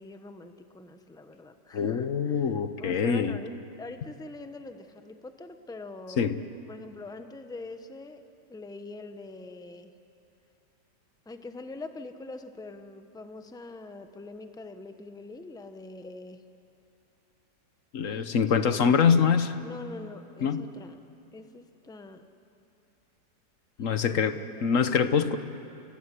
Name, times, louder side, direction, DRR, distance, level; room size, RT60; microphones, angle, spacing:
voice 1, 0.0-2.5 2.8-6.3 6.7-9.9 11.3-16.4 18.0-19.0 19.6-21.0 21.3-22.3 23.8-24.8, left 2 dB, 5° left, 8 dB, 0.7 m, -44 dB
voice 2, 1.7-3.4 6.2-6.4 17.9-19.6 20.4-20.6 23.8-25.4, left 6 dB, 50° left, 10 dB, 1.2 m, -24 dB
29.5 x 17.0 x 10.0 m, 2.8 s
omnidirectional pair, 2.0 m